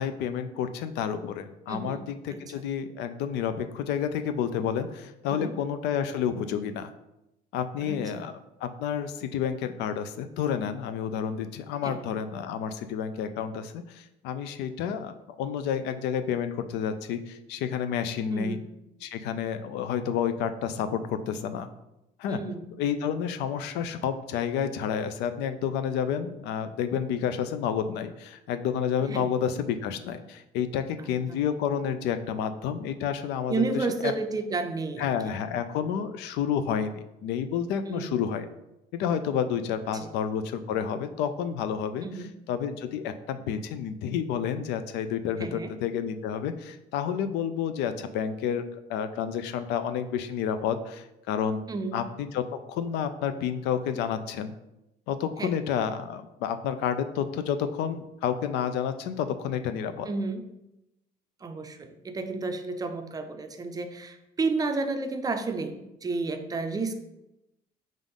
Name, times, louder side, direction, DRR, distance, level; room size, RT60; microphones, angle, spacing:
voice 1, 0.0-6.9 7.5-8.3 8.6-18.6 19.0-21.7 22.2-22.4 22.8-34.1 35.0-38.5 38.9-42.1 42.5-48.6 48.9-51.7 51.9-54.5 55.1-60.1, left 8 dB, 85° left, 10 dB, 0.4 m, -30 dB
voice 2, 1.7-2.0 2.3-2.4 5.3-5.5 7.8-8.3 11.8-12.0 18.3-18.6 22.3-22.7 29.1-29.3 31.0-31.4 33.5-35.3 37.9-38.2 40.0-40.1 42.0-42.3 45.4-45.7 51.7-52.0 55.4-55.5 60.1-60.4 61.4-66.9, right 3 dB, 20° right, 7 dB, 0.4 m, -31 dB
5.4 x 2.5 x 3.5 m, 0.90 s
cardioid pair, 110°, 17 cm